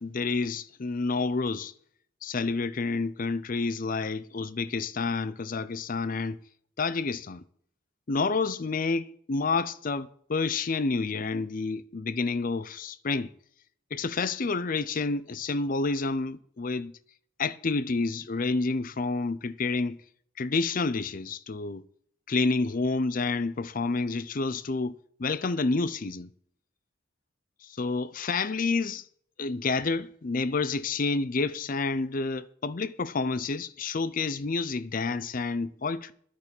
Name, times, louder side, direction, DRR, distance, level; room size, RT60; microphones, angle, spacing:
voice 1, 0.0-1.7 2.2-6.4 6.8-7.4 8.1-13.3 13.9-16.9 17.4-20.0 20.4-21.8 22.3-26.3 27.6-29.0 29.4-36.1, left 3 dB, 40° left, 0.5 m, -29 dB
11.0 x 6.2 x 8.4 m
head